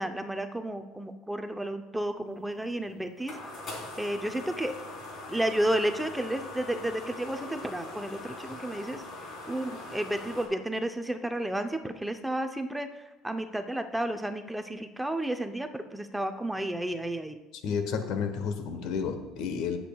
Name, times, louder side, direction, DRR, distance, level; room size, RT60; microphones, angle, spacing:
voice 1, 0.0-3.4 4.0-4.7 5.3-9.0 9.5-17.4, right 1 dB, 5° right, 7 dB, 0.6 m, -32 dB
sound 1, 2.5-10.5, left 2 dB, 40° left, 3.7 m, -42 dB
voice 2, 17.6-19.8, left 6 dB, 65° left, 8 dB, 1.1 m, -31 dB
17.5 x 7.8 x 2.3 m, 1.1 s
cardioid pair, 135°, 0 cm